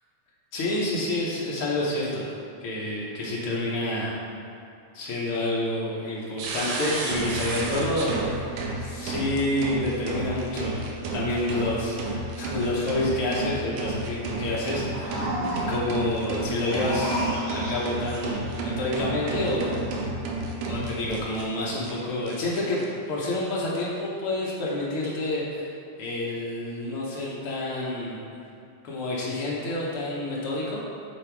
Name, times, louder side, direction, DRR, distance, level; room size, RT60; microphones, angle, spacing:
voice 1, 0.5-2.3 2.6-4.1 4.9-8.2 8.8-15.3 15.7-19.7 20.6-25.7 26.0-28.2 28.8-30.8, left 1 dB, 75° left, -5 dB, 1.2 m, -28 dB
sound 1, 6.4-21.4 21.8-21.9 22.3-22.8, right 2 dB, 80° right, 2.0 m, -31 dB
sound 2, 14.6-16.0 16.5-18.1, equal, 55° right, 2.3 m, -31 dB
7.5 x 3.5 x 4.5 m, 2.5 s
omnidirectional pair, 3.6 m